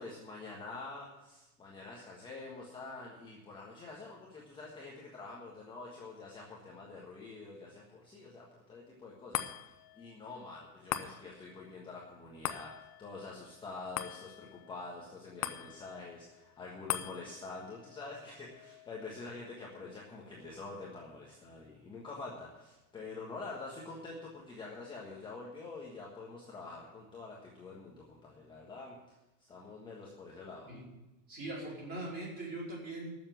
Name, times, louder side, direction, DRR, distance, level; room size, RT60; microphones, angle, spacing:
voice 1, 0.0-29.0 29.5-30.7, left 3 dB, 10° left, -4 dB, 1.4 m, -46 dB
sound 1, 9.3-21.9 22.4-22.5, left 12 dB, 25° left, 0.4 m, -44 dB
voice 2, 31.3-33.1, right 2 dB, 20° right, -4 dB, 4.7 m, -41 dB
12.0 x 7.3 x 9.0 m, 0.95 s
supercardioid pair, 165°, 45 cm